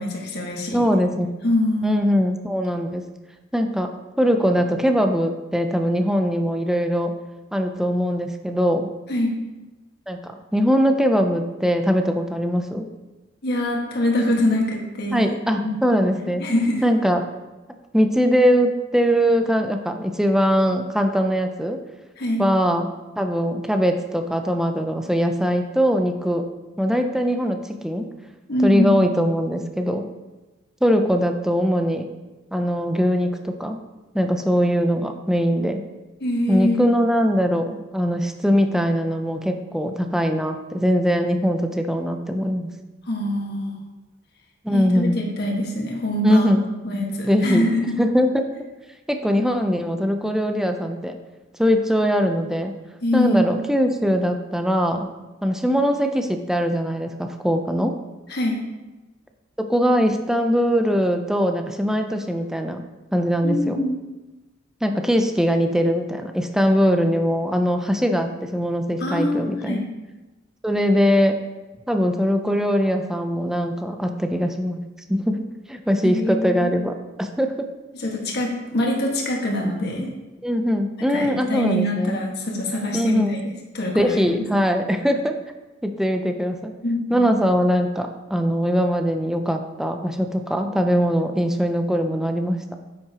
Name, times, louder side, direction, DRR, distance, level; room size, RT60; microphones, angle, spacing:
voice 1, 0.0-0.9 1.4-2.0 9.1-9.3 13.4-15.3 15.6-15.8 16.2-16.8 22.2-22.4 28.5-28.9 36.2-36.9 43.1-43.8 44.7-46.5 46.8-48.0 53.0-53.5 58.3-58.6 63.4-64.0 69.0-69.8 76.0-76.7 77.9-80.1 81.1-83.4 83.7-84.4 86.8-87.2, left 1 dB, 55° left, -1 dB, 1.6 m, -24 dB
voice 2, 0.7-1.3 1.8-3.0 3.5-3.9 4.2-7.1 7.5-8.9 10.1-12.9 15.1-16.4 16.8-17.2 17.9-21.8 22.4-22.9 23.2-26.4 26.8-28.1 28.6-30.0 30.8-32.1 32.5-33.8 34.1-35.8 36.5-42.7 44.6-45.2 46.2-46.6 47.2-47.6 48.0-48.5 49.1-51.1 51.6-52.7 53.1-55.1 55.4-57.9 59.6-62.8 63.1-63.8 64.8-69.8 70.6-71.4 71.9-74.8 75.1-77.6 80.4-82.2 82.9-83.4 83.9-85.4 85.8-86.7 87.1-92.7, equal, 5° right, 5 dB, 0.5 m, -21 dB
9.5 x 7.6 x 2.9 m, 1.1 s
head